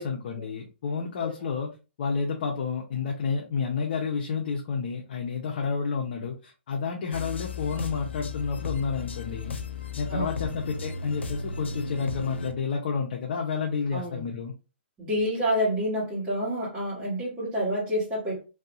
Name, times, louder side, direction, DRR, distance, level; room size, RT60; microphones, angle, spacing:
voice 1, 0.0-9.6 10.0-14.5, left 5 dB, 50° left, 0 dB, 0.7 m, -30 dB
sound 1, 7.1-12.5, left 4 dB, 85° left, 0.6 m, -35 dB
voice 2, 10.1-10.6 13.9-14.2 15.0-18.4, equal, 15° right, -10 dB, 1.4 m, -28 dB
3.4 x 2.7 x 2.5 m, 0.31 s
hypercardioid pair, 155°, 6 cm